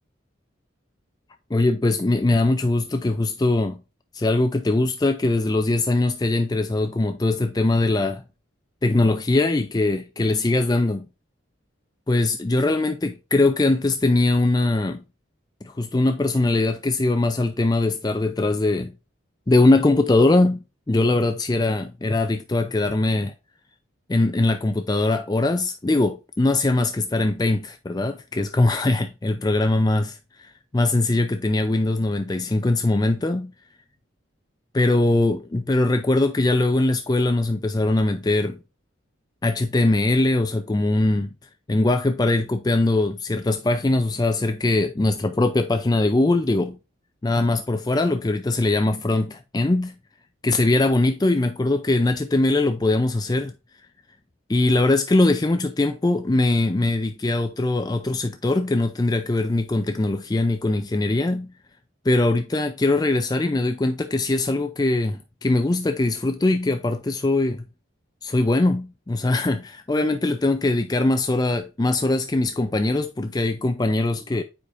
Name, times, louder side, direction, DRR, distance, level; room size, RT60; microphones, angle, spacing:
voice 1, 1.5-3.8 4.1-8.2 8.8-11.1 12.1-15.0 15.6-18.9 19.5-20.6 20.9-23.3 24.1-33.5 34.7-38.6 39.4-41.3 41.7-46.8 47.2-49.9 50.4-53.5 54.5-61.5 62.0-67.6 68.2-74.4, left 2 dB, 20° left, 0.4 m, -21 dB
9.0 x 4.9 x 2.5 m
head